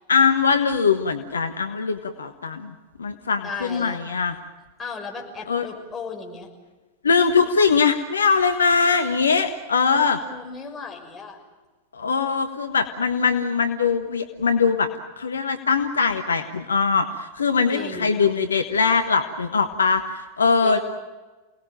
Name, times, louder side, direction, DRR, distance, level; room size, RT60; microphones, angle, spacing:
voice 1, 0.1-4.4 5.5-5.7 7.0-10.2 11.9-14.9 15.2-20.8, left 5 dB, 70° left, 7 dB, 1.3 m, -21 dB
voice 2, 3.4-4.0 4.8-6.5 10.0-11.4 17.7-18.2 20.6-20.8, left 4 dB, 20° left, 1 dB, 6.0 m, -36 dB
28.5 x 19.0 x 9.1 m, 1.2 s
figure-of-eight pair, 90°, 0 cm